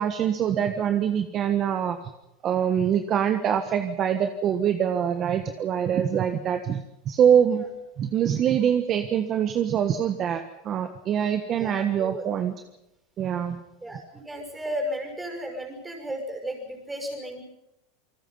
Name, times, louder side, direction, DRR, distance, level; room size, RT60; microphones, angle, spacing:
voice 1, 0.0-2.0 2.4-7.6 8.0-12.5 13.2-13.6, right 9 dB, 35° right, 7 dB, 1.4 m, -24 dB
voice 2, 11.5-12.3 13.8-17.4, equal, 10° right, 4 dB, 5.9 m, -34 dB
28.0 x 20.5 x 5.7 m, 0.90 s
supercardioid pair, 140°, 0 cm